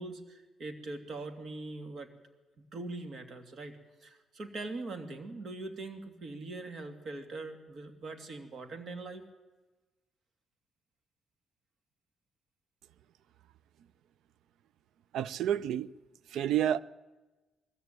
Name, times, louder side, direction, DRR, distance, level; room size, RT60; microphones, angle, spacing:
voice 1, 0.0-2.1 2.7-9.2, right 2 dB, 55° right, 2.5 m, -42 dB
voice 2, 15.1-15.9 16.3-16.8, right 10 dB, 80° right, 0.5 m, -29 dB
20.5 x 14.0 x 9.1 m
cardioid pair, 90°, 0 cm